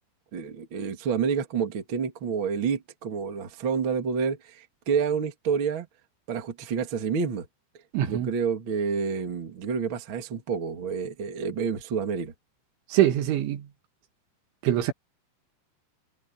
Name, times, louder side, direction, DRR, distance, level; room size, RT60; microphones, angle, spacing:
voice 1, 0.3-5.9 6.3-7.5 8.1-12.3, right 6 dB, 40° right, 1.9 m, -29 dB
voice 2, 7.9-8.3 12.9-13.7 14.6-14.9, right 12 dB, 70° right, 4.2 m, -23 dB
omnidirectional pair, 5.7 m